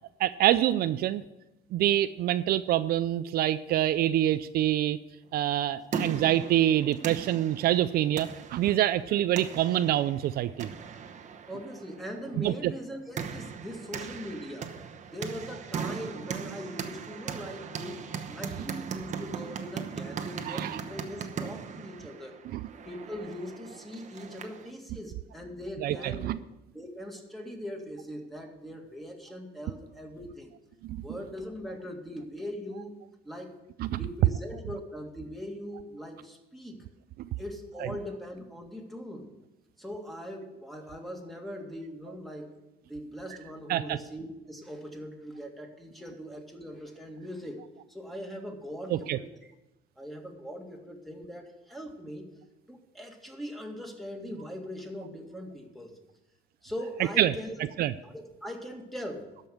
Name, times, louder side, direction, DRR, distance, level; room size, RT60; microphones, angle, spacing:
voice 1, 0.2-1.2 1.7-5.0 5.3-10.7 12.4-12.7 20.5-20.8 22.5-22.6 25.8-26.4 30.9-31.0 33.8-34.0 43.7-44.0 48.9-49.2 57.2-57.3 57.8-57.9, right 13 dB, 65° right, 13 dB, 0.4 m, -26 dB
sound 1, 5.5-24.7, right 6 dB, 45° right, 1.0 m, -39 dB
voice 2, 11.5-14.7 15.1-22.4 22.8-26.3 26.7-30.5 30.9-33.0 33.2-33.6 34.0-36.8 37.4-39.3 39.8-42.5 42.9-49.5 50.0-52.3 52.7-55.9 56.6-57.5 58.0-59.3, equal, ahead, 2 dB, 2.0 m, -41 dB
12.5 x 5.4 x 7.7 m, 0.95 s
cardioid pair, 110°, 17 cm